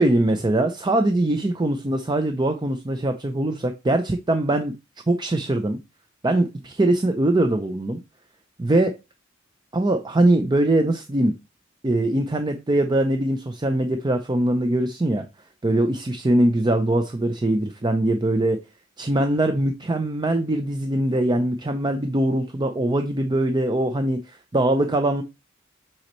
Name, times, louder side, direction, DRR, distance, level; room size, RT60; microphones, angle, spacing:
voice 1, 0.0-4.7 5.1-5.8 6.2-8.0 8.6-9.0 9.7-11.3 11.8-15.2 15.6-18.6 19.0-24.2 24.5-25.2, right 1 dB, 20° right, 0.5 m, -22 dB
7.7 x 4.3 x 3.1 m
head